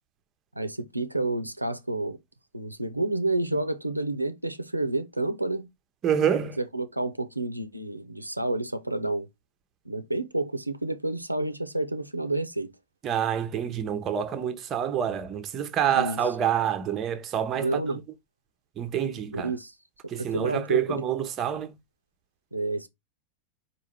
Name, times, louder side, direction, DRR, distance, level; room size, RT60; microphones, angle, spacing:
voice 1, 0.6-2.2 2.5-5.7 6.6-9.3 9.9-12.7 15.9-16.2 17.5-18.0 19.3-19.7 20.2-21.0 22.5-22.9, right 2 dB, 85° right, 0.5 m, -29 dB
voice 2, 6.0-6.6 13.0-17.8 18.8-19.5 20.1-21.8, right 9 dB, 30° right, 0.7 m, -27 dB
4.7 x 2.5 x 4.6 m
figure-of-eight pair, 90°, 0 cm